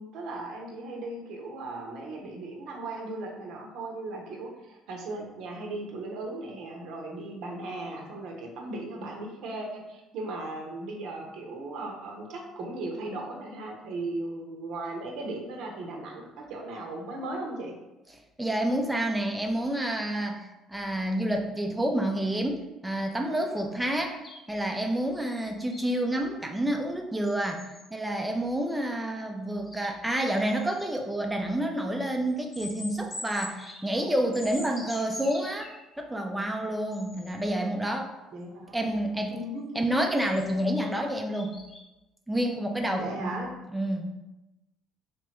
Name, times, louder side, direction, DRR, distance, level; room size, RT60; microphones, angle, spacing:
voice 1, 0.0-17.7 38.3-38.8 39.3-39.7 42.9-43.5, right 2 dB, 60° right, 0 dB, 0.7 m, -37 dB
voice 2, 18.4-24.2 24.5-27.6 27.9-35.7 36.0-38.1 38.7-39.4 39.8-41.6 42.3-43.4 43.7-44.1, right 1 dB, 10° right, 2 dB, 0.5 m, -29 dB
sound 1, 24.0-26.2 27.2-27.9 28.7-28.8 29.7-31.0 32.5-35.8 36.9-37.5 39.9-41.8, left 1 dB, 30° left, 0.8 m, -45 dB
3.4 x 3.0 x 2.9 m, 1.0 s
figure-of-eight pair, 55°, 0 cm